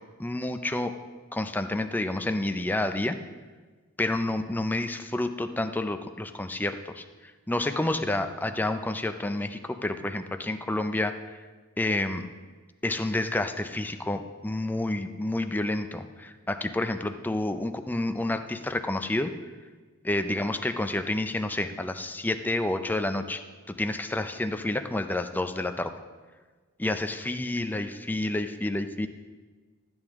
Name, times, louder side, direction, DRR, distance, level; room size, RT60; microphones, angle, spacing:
voice 1, 0.2-1.0 1.3-3.2 4.0-7.0 7.5-11.1 11.8-12.3 12.8-19.3 20.0-23.4 23.7-25.9 26.8-29.1, left 2 dB, 10° left, 8 dB, 0.4 m, -29 dB
13.0 x 8.8 x 3.6 m, 1.4 s
head